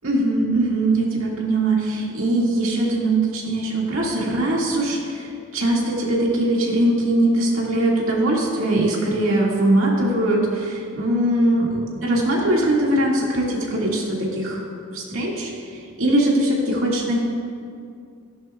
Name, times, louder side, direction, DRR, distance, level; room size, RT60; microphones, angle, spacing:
voice 1, 0.0-14.6 14.9-15.5 16.0-17.2, right 1 dB, 80° right, -3 dB, 2.1 m, -21 dB
14.5 x 10.5 x 2.4 m, 2.4 s
head